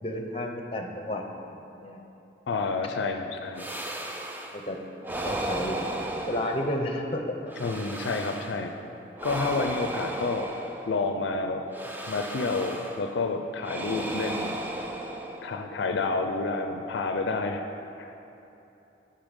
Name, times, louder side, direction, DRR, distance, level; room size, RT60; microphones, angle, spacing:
voice 1, 0.0-2.0 4.5-4.8 5.2-5.8 6.3-7.5, left 1 dB, 30° left, 3 dB, 0.7 m, -32 dB
voice 2, 2.5-3.7 7.6-8.8 9.2-10.5 10.9-11.6 12.1-14.6 15.4-17.6 18.0-18.2, left 3 dB, 70° left, 6 dB, 0.4 m, -29 dB
sound 1, 3.6-4.6 5.0-7.0 7.5-8.7 9.2-11.2 11.7-13.1 13.6-15.7, right 1 dB, 10° right, 0.4 m, -35 dB
9.1 x 5.4 x 5.2 m, 3.0 s
head